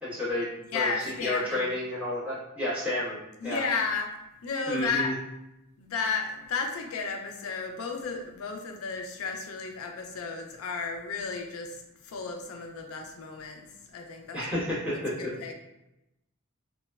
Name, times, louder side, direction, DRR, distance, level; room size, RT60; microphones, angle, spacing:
voice 1, 0.0-0.9 1.2-3.6 4.7-5.1 14.3-15.3, left 1 dB, 5° right, -12 dB, 1.2 m, -31 dB
voice 2, 0.7-1.7 3.4-4.1 4.4-5.2 5.8-14.4 14.9-15.5, left 4 dB, 75° left, 3 dB, 0.4 m, -33 dB
2.8 x 2.1 x 2.2 m, 0.89 s
head